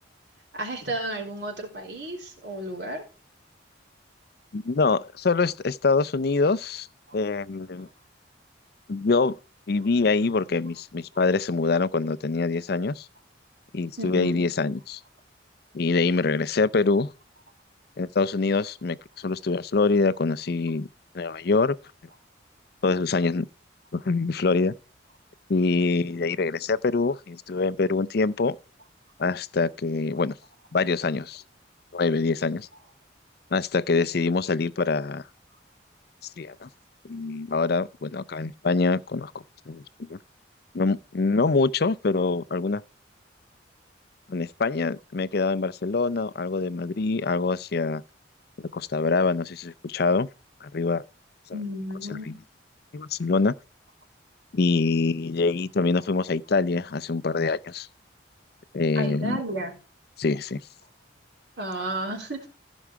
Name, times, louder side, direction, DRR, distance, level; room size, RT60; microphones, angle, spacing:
voice 1, 0.5-3.0 7.1-7.2 14.0-14.4 51.5-52.4 59.0-59.7 61.6-62.4, right 1 dB, 65° right, 3.8 m, -32 dB
voice 2, 4.5-6.9 7.1-7.9 8.9-9.4 9.7-13.1 13.7-15.0 15.7-17.1 18.0-20.9 21.1-21.8 22.8-23.5 23.9-24.7 25.5-28.6 29.2-30.3 30.7-31.4 31.9-32.7 33.5-35.2 36.4-36.7 37.0-39.3 39.7-40.2 40.7-42.8 44.3-48.0 48.6-50.3 50.6-51.0 52.1-52.3 52.9-53.5 54.5-57.9 58.7-59.4 60.2-60.6, left 4 dB, 55° left, 0.5 m, -25 dB
15.0 x 6.2 x 4.6 m
head